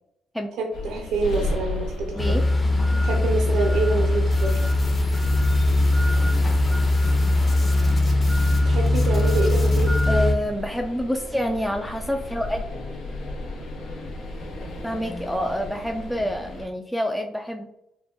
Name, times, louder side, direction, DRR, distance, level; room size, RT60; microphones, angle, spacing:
voice 1, 0.6-2.4 3.0-4.5 8.6-10.3, right 3 dB, 90° right, 2 dB, 0.6 m, -26 dB
sound 1, 0.7-16.7, left 1 dB, 70° left, 1.0 m, -36 dB
sound 2, 2.2-10.3, left 2 dB, 20° left, 0.8 m, -20 dB
sound 3, 4.3-8.6 8.9-10.1, left 2 dB, 40° left, 1.2 m, -42 dB
voice 2, 10.1-12.6 14.8-17.7, equal, 5° left, 3 dB, 0.3 m, -27 dB
3.7 x 2.2 x 3.6 m, 0.82 s
cardioid pair, 90°, 0 cm